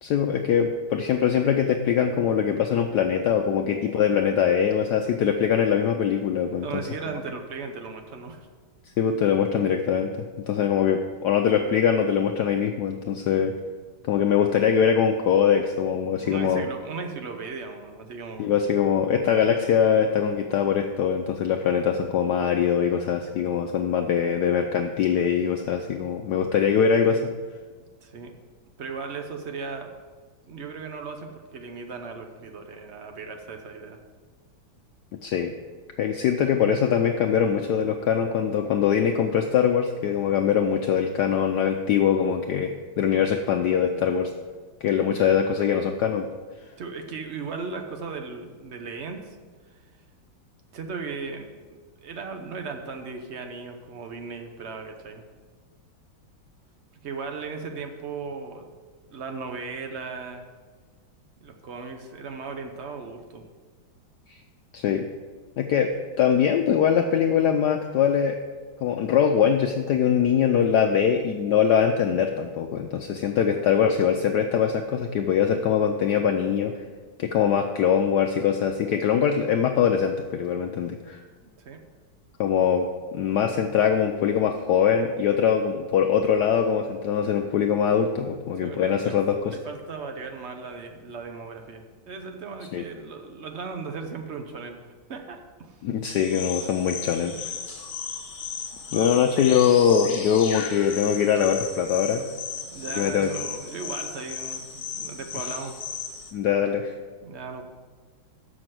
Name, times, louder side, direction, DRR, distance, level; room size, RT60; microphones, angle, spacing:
voice 1, 0.0-6.8 9.0-10.1 10.4-13.5 14.1-16.7 18.4-27.2 35.2-35.5 36.0-44.3 44.8-46.3 64.7-65.1 65.6-68.4 68.8-76.7 77.2-81.2 82.4-82.9 83.1-89.6 92.7-92.8 95.8-97.5 98.9-102.2 103.0-103.3 106.3-106.9, left 8 dB, 70° left, 5 dB, 1.0 m, -22 dB
voice 2, 6.6-8.5 16.2-18.6 28.0-28.3 28.8-29.9 30.5-34.0 46.8-49.4 50.7-55.2 57.0-58.6 59.1-60.4 61.4-63.4 73.2-73.6 81.4-81.8 88.6-89.2 89.4-94.8 95.1-95.8 102.5-105.8 107.2-107.6, right 4 dB, 55° right, 5 dB, 0.8 m, -37 dB
sound 1, 96.0-106.3, left 6 dB, 45° left, 1.3 m, -35 dB
7.1 x 6.2 x 7.5 m, 1.4 s
omnidirectional pair, 2.2 m